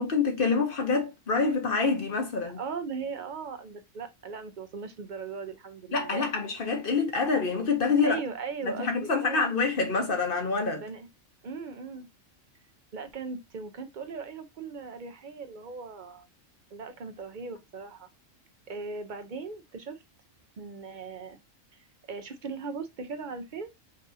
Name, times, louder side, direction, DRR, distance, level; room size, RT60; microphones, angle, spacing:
voice 1, 0.0-2.6 5.9-8.2 8.6-10.8, left 4 dB, 50° left, 1.0 m, -26 dB
voice 2, 2.6-6.3 8.0-9.4 10.7-11.1 11.4-12.1 12.9-16.3 16.7-18.1 18.7-20.0 20.6-21.4 22.1-23.7, right 5 dB, 50° right, 0.7 m, -38 dB
5.4 x 2.6 x 2.6 m
omnidirectional pair, 1.3 m